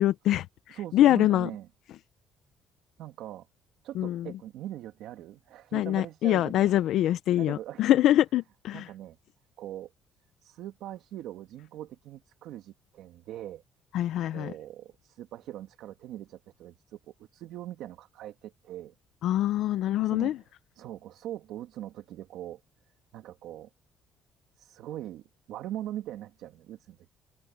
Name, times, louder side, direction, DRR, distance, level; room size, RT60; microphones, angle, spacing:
voice 1, 0.0-1.5 4.0-4.3 5.7-8.9 13.9-14.5 19.2-20.4, left 13 dB, 75° left, 0.6 m, -24 dB
voice 2, 0.7-1.7 3.0-3.5 3.8-6.8 7.4-8.0 8.7-9.2 9.6-9.9 10.4-13.6 14.2-18.9 20.0-20.5 20.8-22.6 23.1-23.7 24.6-27.1, right 12 dB, 80° right, 2.2 m, -41 dB
cardioid pair, 130°, 0 cm